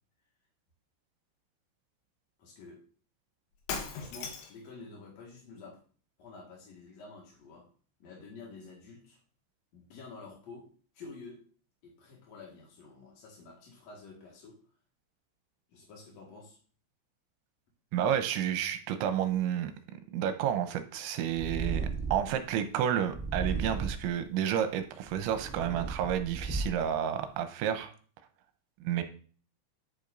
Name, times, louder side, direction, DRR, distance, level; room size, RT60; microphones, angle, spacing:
voice 1, 2.4-2.8 3.9-5.8 6.2-7.7 8.0-9.2 9.7-10.7 10.9-11.4 11.8-14.6 15.7-16.6, left 3 dB, 55° left, -2 dB, 2.1 m, -49 dB
Shatter, 3.6-4.7, left 5 dB, 80° left, 3.7 m, -37 dB
voice 2, 17.9-19.7 20.1-27.9 28.8-29.0, right 9 dB, 80° right, 8 dB, 2.9 m, -30 dB
Purr, 21.3-22.4 23.1-24.2 24.9-27.0, right 4 dB, 5° right, 1.2 m, -35 dB
10.5 x 8.4 x 2.6 m, 0.42 s
omnidirectional pair, 5.6 m